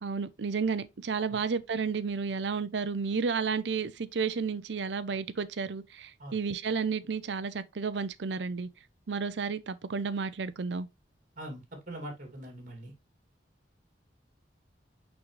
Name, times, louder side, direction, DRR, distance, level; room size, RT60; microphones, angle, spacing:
voice 1, 0.0-8.7 9.1-10.9, right 5 dB, 70° right, 0.6 m, -32 dB
voice 2, 11.4-12.9, right 1 dB, 50° right, 2.5 m, -42 dB
6.1 x 5.2 x 3.2 m
head